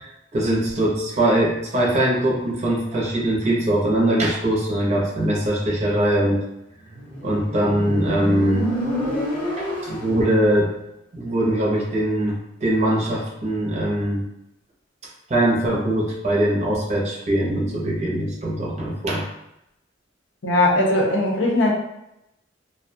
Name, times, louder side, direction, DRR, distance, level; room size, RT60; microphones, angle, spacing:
voice 1, 0.0-6.4 7.2-8.7 9.6-10.7 11.1-14.3 15.3-19.3, right 1 dB, 35° right, -3 dB, 0.6 m, -22 dB
Motorcycle, 6.9-10.4, equal, 10° left, 0.6 m, -28 dB
voice 2, 20.4-21.7, left 1 dB, 80° left, -1 dB, 0.6 m, -19 dB
2.3 x 2.1 x 2.6 m, 0.84 s
head